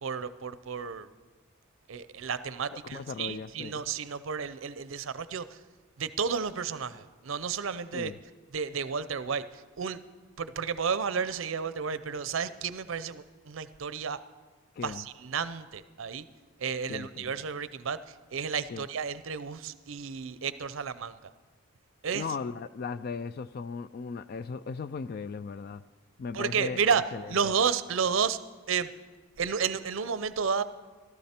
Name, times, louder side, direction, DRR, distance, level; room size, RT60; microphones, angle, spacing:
voice 1, 0.0-1.1 1.9-5.4 6.0-8.1 8.5-9.4 9.8-10.0 10.4-14.2 14.8-16.3 16.6-18.0 18.3-21.3 22.0-22.2 26.3-27.0 27.3-28.4 28.7-28.9 29.4-30.6, right 6 dB, 65° right, 14 dB, 0.5 m, -31 dB
voice 2, 2.9-3.8 7.9-8.2 14.8-15.1 16.9-17.3 18.7-18.9 22.1-25.8 26.2-27.5, left 5 dB, 45° left, 15 dB, 0.3 m, -37 dB
15.5 x 13.0 x 4.4 m, 1.3 s
head